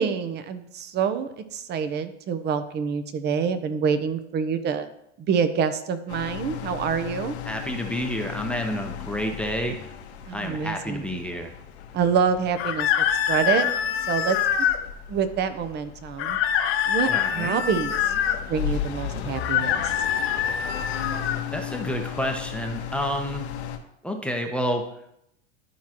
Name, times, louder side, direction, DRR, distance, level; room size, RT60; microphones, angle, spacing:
voice 1, 0.0-4.9 5.2-7.3 10.3-11.0 11.9-12.9 13.3-13.7 14.1-14.7 15.1-16.4 16.9-17.9 18.5-19.9, right 6 dB, 30° right, 11 dB, 0.8 m, -26 dB
sound 1, 6.1-23.8, left 8 dB, 75° left, 1.2 m, -36 dB
voice 2, 7.4-9.8 10.3-11.5 17.1-17.6 21.5-23.5 24.0-24.8, equal, 5° left, 3 dB, 0.8 m, -29 dB
sound 2, 12.6-14.8 16.2-18.4 19.3-21.4, left 9 dB, 40° left, 0.9 m, -25 dB
12.0 x 4.6 x 3.0 m, 0.77 s
hypercardioid pair, 115°, 33 cm